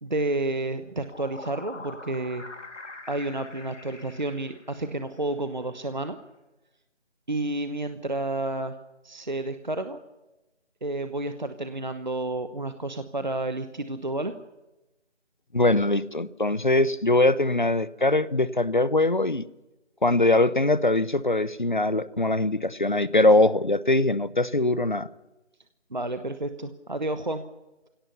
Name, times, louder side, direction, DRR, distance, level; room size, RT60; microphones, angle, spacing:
voice 1, 0.0-2.4 3.1-6.2 7.3-8.8 9.0-10.0 10.8-14.3 25.9-27.4, right 2 dB, 40° right, 9 dB, 1.1 m, -30 dB
sound 1, 0.8-5.2, left 2 dB, 85° left, 2.5 m, -44 dB
voice 2, 15.5-19.4 20.0-25.1, left 2 dB, 40° left, 18 dB, 0.8 m, -22 dB
24.5 x 17.5 x 7.0 m, 1.0 s
figure-of-eight pair, 175°, 35 cm